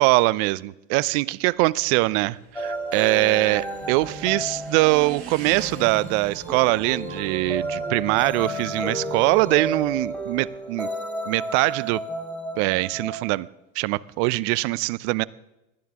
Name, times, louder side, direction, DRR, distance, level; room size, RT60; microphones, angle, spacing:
voice 1, 0.0-10.9 11.3-12.0 12.6-13.5 13.8-15.2, right 21 dB, 55° right, 0.7 m, -22 dB
Motorcycle / Engine, 1.4-10.6, right 6 dB, 30° right, 6.6 m, -45 dB
sound 1, 2.6-13.3, right 1 dB, 5° left, 3.6 m, -32 dB
sound 2, 3.5-10.4, right 1 dB, 40° left, 2.8 m, -44 dB
20.5 x 13.5 x 3.7 m
hypercardioid pair, 85°, 42 cm